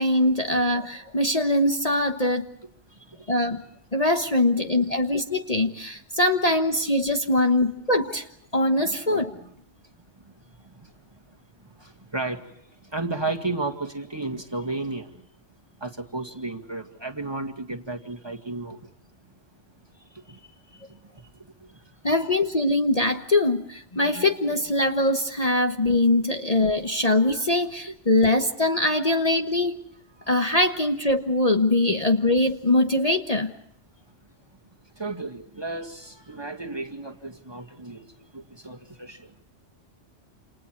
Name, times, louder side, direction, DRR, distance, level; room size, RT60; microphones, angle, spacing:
voice 1, 0.0-2.5 3.3-3.6 3.9-8.3 8.5-9.3 22.0-29.8 30.3-33.5, left 1 dB, 30° left, 5 dB, 1.3 m, -22 dB
voice 2, 2.9-3.3 4.4-4.5 10.2-15.2 15.8-18.8 20.0-22.1 30.2-30.4 35.0-39.3, right 2 dB, 20° right, 3 dB, 2.0 m, -34 dB
29.0 x 28.5 x 4.6 m, 0.72 s
omnidirectional pair, 1.2 m